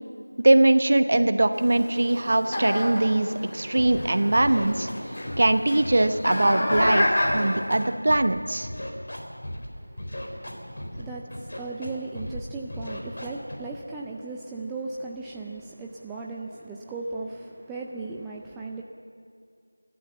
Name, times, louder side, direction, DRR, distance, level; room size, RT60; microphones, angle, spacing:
voice 1, 0.4-4.9 5.4-7.0 7.3-8.7, right 2 dB, 40° right, 10 dB, 0.9 m, -21 dB
sound 1, 1.5-7.7, left 1 dB, 25° left, 3.2 m, -29 dB
Scratching (performance technique), 3.7-4.1 4.3-5.5 5.8-6.9 7.2-8.3 8.6-9.7 10.0-11.0 11.3-11.9 12.1-12.4 12.7-13.5, left 1 dB, 45° left, 3.8 m, -36 dB
voice 2, 9.7-18.8, right 3 dB, 5° right, -3 dB, 0.5 m, -37 dB
29.5 x 12.5 x 7.2 m, 2.3 s
figure-of-eight pair, 175°, 0 cm